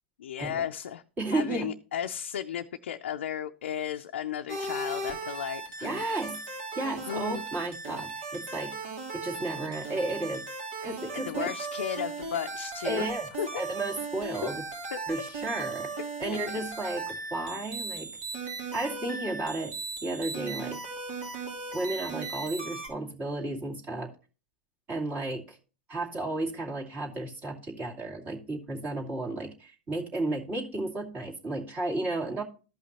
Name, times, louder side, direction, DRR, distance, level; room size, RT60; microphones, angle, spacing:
voice 1, 0.2-1.0 1.3-5.9 7.0-7.4 11.1-13.1 13.4-13.6 14.4-14.5 14.9-15.0 16.3-16.7, left 9 dB, 75° left, 0.5 m, -34 dB
voice 2, 1.2-1.7 5.8-6.4 6.7-8.8 9.1-10.4 10.8-11.5 12.9-13.3 13.5-14.6 15.1-15.9 16.2-18.1 18.7-19.7 20.0-20.8 21.7-24.1 24.9-25.6 25.9-32.4, right 2 dB, 30° right, 2.4 m, -33 dB
sound 1, 4.5-22.9, right 3 dB, 70° right, 3.2 m, -37 dB
14.0 x 5.6 x 2.9 m
hypercardioid pair, 105°, 6 cm